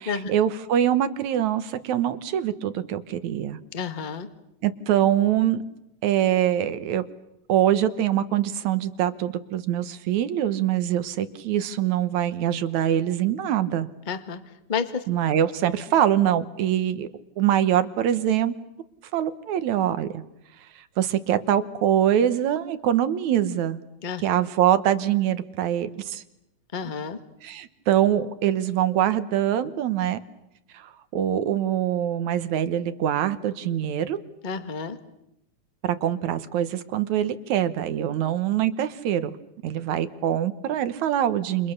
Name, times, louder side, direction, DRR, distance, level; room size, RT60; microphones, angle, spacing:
voice 1, 0.0-3.6 4.6-5.6 6.0-7.0 7.5-13.9 15.1-17.1 17.4-18.5 19.1-20.2 21.0-23.8 24.2-26.2 27.4-30.2 30.7-34.2 35.8-39.3 39.6-41.7, right 11 dB, 75° right, 12 dB, 2.5 m, -24 dB
voice 2, 3.7-4.3 14.1-14.4 14.7-15.0 24.0-24.2 26.7-27.2 34.4-35.0, left 6 dB, 25° left, 9 dB, 1.0 m, -30 dB
29.5 x 28.5 x 6.7 m, 0.85 s
omnidirectional pair, 3.3 m